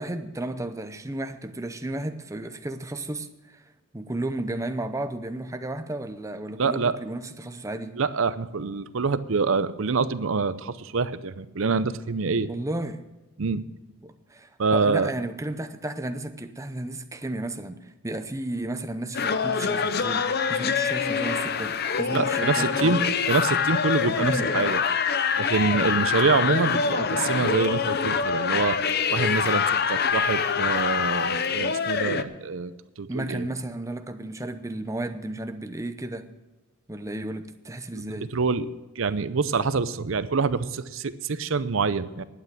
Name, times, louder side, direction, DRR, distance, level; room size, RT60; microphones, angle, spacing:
voice 1, 0.0-3.6 3.9-8.0 12.5-13.0 14.0-23.0 24.2-24.5 33.1-36.3 36.9-38.3, right 1 dB, 15° right, 0.7 m, -33 dB
voice 2, 6.6-7.0 8.0-12.5 13.4-13.7 14.6-15.1 22.1-24.8 25.4-28.8 29.1-32.7 33.0-33.5 37.9-38.7 39.0-42.2, right 4 dB, 65° right, 0.6 m, -26 dB
sound 1, 19.1-32.2, left 6 dB, 45° left, 0.7 m, -25 dB
11.5 x 9.2 x 7.3 m
head